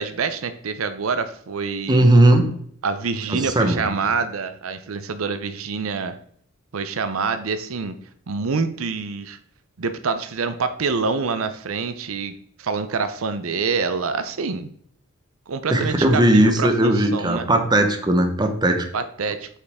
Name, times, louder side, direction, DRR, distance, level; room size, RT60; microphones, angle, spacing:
voice 1, 0.0-2.1 2.8-6.2 6.7-7.9 8.3-9.4 9.8-14.7 15.5-17.5 18.9-19.5, right 5 dB, 80° right, 11 dB, 0.6 m, -26 dB
voice 2, 1.9-2.5 3.3-3.9 15.7-18.8, right 1 dB, 20° right, 5 dB, 1.0 m, -17 dB
8.1 x 5.6 x 3.5 m, 0.62 s
head